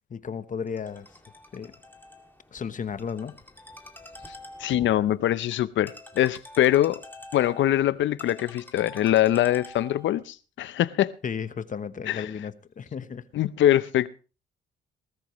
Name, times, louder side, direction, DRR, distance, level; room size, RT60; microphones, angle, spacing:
voice 1, 0.1-1.1 1.5-1.7 2.5-3.3 4.8-4.9 11.2-13.2, left 6 dB, 40° left, 1.0 m, -34 dB
Ringtone, 0.7-10.2, left 1 dB, 10° left, 2.2 m, -47 dB
voice 2, 4.6-7.0 7.3-11.1 12.1-12.3 13.3-14.1, left 12 dB, 70° left, 0.7 m, -23 dB
19.5 x 14.0 x 3.1 m
cardioid pair, 90°, 20 cm